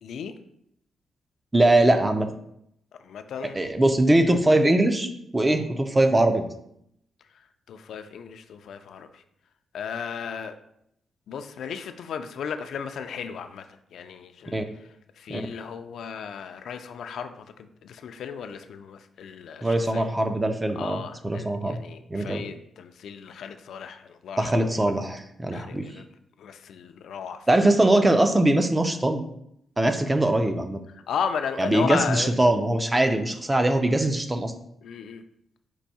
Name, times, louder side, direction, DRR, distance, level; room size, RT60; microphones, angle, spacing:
voice 1, 0.0-0.3 3.0-3.6 7.3-9.2 9.7-10.5 11.3-13.7 13.9-14.9 15.2-20.0 20.8-24.9 25.5-26.1 26.4-27.5 30.9-32.3 34.8-35.2, left 7 dB, 70° left, 8 dB, 0.3 m, -35 dB
voice 2, 1.5-2.3 3.6-6.5 14.5-14.6 15.3-15.4 19.6-21.8 22.1-22.4 24.4-25.9 27.5-29.2 29.8-30.8 31.6-34.5, right 1 dB, 15° right, 7 dB, 0.3 m, -22 dB
4.5 x 2.6 x 4.1 m, 0.74 s
wide cardioid pair, 160°, 0 cm